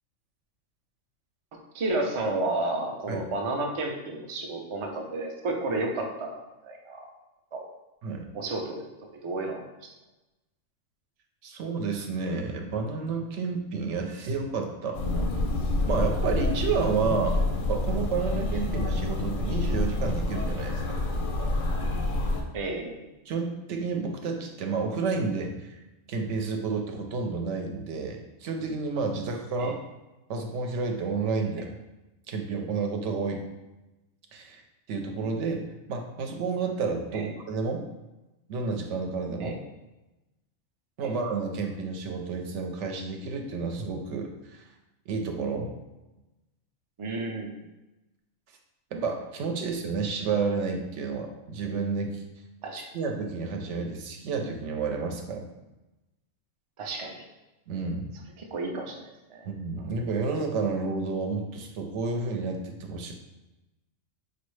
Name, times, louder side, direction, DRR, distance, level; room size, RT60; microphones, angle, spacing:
voice 1, 1.7-7.1 7.5-7.6 8.3-8.9 9.2-9.9 22.5-23.1 29.6-29.7 37.1-37.3 39.4-39.6 41.0-41.1 47.0-47.5 52.6-52.9 56.8-57.2 58.4-59.4, right 2 dB, 55° right, 1 dB, 0.3 m, -32 dB
voice 2, 11.4-15.0 15.9-21.0 23.3-25.7 26.1-29.8 30.3-31.7 32.3-33.5 34.3-34.6 34.9-37.9 38.5-39.6 41.0-44.6 45.1-45.7 48.9-52.2 52.7-55.5 57.7-58.1 59.4-63.1, right 4 dB, 75° right, 3 dB, 0.9 m, -30 dB
sound 1, 14.9-22.4, left 2 dB, 60° left, 0.6 m, -27 dB
4.4 x 2.4 x 3.1 m, 1.0 s
omnidirectional pair, 1.3 m